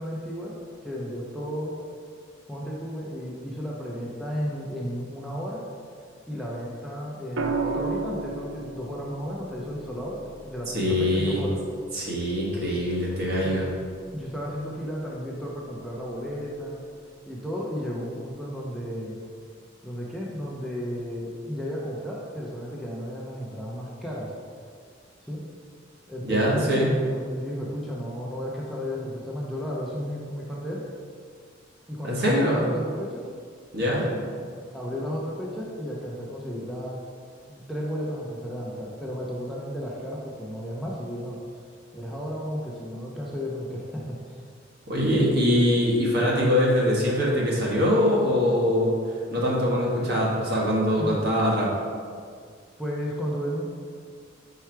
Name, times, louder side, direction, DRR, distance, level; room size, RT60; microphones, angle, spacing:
voice 1, 0.0-1.8 2.5-5.6 6.3-11.6 13.4-13.6 14.1-16.8 17.3-19.1 19.8-24.3 25.2-25.4 26.1-30.9 31.9-33.3 34.0-34.2 34.7-37.0 37.5-41.4 41.9-44.4 51.0-51.3 52.8-53.7, equal, ahead, -5 dB, 0.6 m, -33 dB
sound 1, 7.4-11.5 13.2-13.6, right 4 dB, 70° right, 0.4 m, -33 dB
voice 2, 10.7-11.4 11.9-13.7 26.3-26.9 32.0-32.6 33.7-34.1 44.9-48.9 49.3-51.7, equal, 55° right, -4 dB, 1.4 m, -23 dB
4.6 x 4.6 x 4.5 m, 2.1 s
head